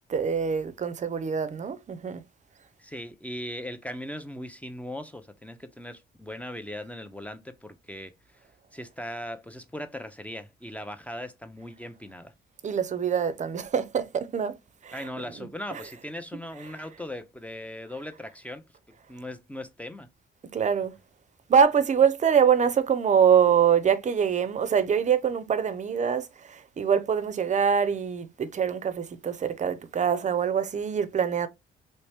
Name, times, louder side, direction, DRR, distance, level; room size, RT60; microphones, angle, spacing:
voice 1, 0.1-2.2 12.6-14.6 14.8-15.1 15.4-16.0 16.5-16.9 20.5-20.9 21.5-31.5, right 7 dB, 35° right, 0.5 m, -24 dB
voice 2, 2.8-8.4 8.7-12.3 14.9-20.1, left 1 dB, 5° left, 0.5 m, -39 dB
3.1 x 2.9 x 3.3 m
cardioid pair, 90°, 20 cm